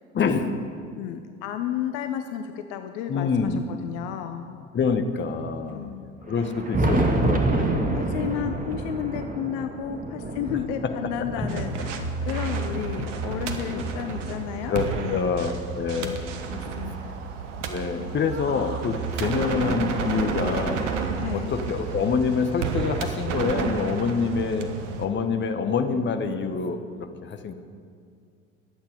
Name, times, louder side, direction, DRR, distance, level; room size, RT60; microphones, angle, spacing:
voice 1, 0.1-0.5 3.1-3.7 4.7-5.9 6.3-8.0 13.7-13.8 14.7-16.4 17.6-20.9 21.3-24.7 25.0-27.5, left 5 dB, 30° left, 7 dB, 1.3 m, -26 dB
voice 2, 1.0-3.5 3.8-4.6 5.7-6.6 7.9-15.3 16.0-16.3 16.5-17.1 18.0-18.2 21.2-21.6, left 9 dB, 55° left, 7 dB, 0.9 m, -33 dB
Thunder, 6.2-14.8 15.4-17.1 18.3-18.4 18.9-19.0 20.9-21.0 22.4-22.5 24.0-24.1, right 2 dB, 20° right, 2.0 m, -29 dB
sound 1, 11.5-25.1, right 5 dB, 65° right, 1.4 m, -31 dB
23.5 x 8.9 x 5.1 m, 2.3 s
figure-of-eight pair, 65°, 39 cm